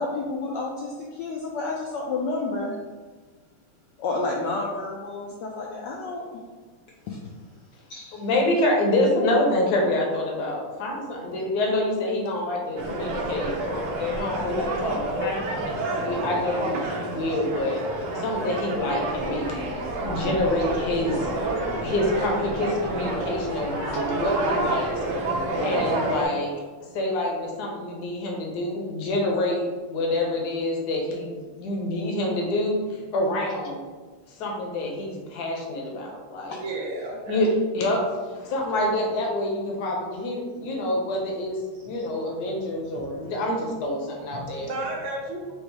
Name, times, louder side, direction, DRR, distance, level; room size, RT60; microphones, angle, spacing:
voice 1, 0.0-2.8 4.0-6.2 7.1-7.2 7.9-8.2, left 3 dB, 75° left, -2 dB, 1.0 m, -30 dB
voice 2, 8.1-17.8 18.1-19.7 20.0-21.5 21.8-24.9 25.6-26.5 26.9-33.8 34.4-36.6 37.3-38.0 38.3-44.7, left 1 dB, 55° left, -1 dB, 1.2 m, -27 dB
sound 1, 12.8-26.2, right 2 dB, 65° right, 1.2 m, -29 dB
voice 3, 36.5-37.4 41.8-41.9 42.9-43.3 44.3-45.6, right 2 dB, 85° right, -3 dB, 1.9 m, -34 dB
5.3 x 2.0 x 4.6 m, 1.4 s
omnidirectional pair, 2.3 m